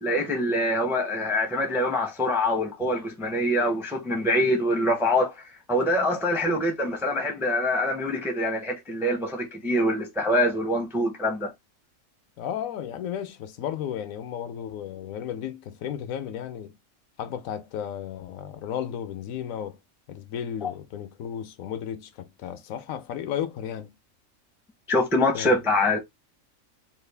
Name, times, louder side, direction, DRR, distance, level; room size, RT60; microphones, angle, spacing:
voice 1, 0.0-5.4 5.7-11.5 20.6-20.7 24.9-26.0, left 1 dB, 5° right, 0.4 m, -24 dB
voice 2, 12.4-16.7 17.2-19.8 20.1-23.9 25.3-25.5, left 9 dB, 90° left, 1.0 m, -34 dB
3.1 x 2.4 x 3.3 m
omnidirectional pair, 1.4 m